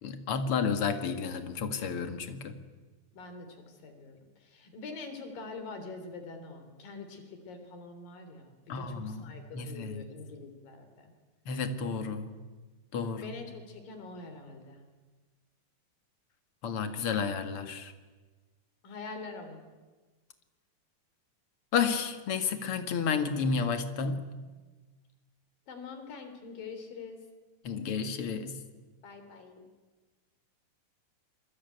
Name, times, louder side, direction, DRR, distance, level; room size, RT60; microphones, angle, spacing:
voice 1, 0.0-2.6 8.7-10.1 11.5-12.3 12.9-13.4 16.6-17.9 21.7-24.2 27.6-28.6, left 5 dB, 45° left, 8 dB, 2.3 m, -31 dB
voice 2, 3.1-3.5 3.8-4.2 4.4-11.1 13.2-14.8 18.8-19.6 25.7-27.2 29.0-29.6, left 4 dB, 80° left, 7 dB, 5.1 m, -44 dB
28.0 x 22.5 x 9.3 m, 1.3 s
omnidirectional pair, 3.9 m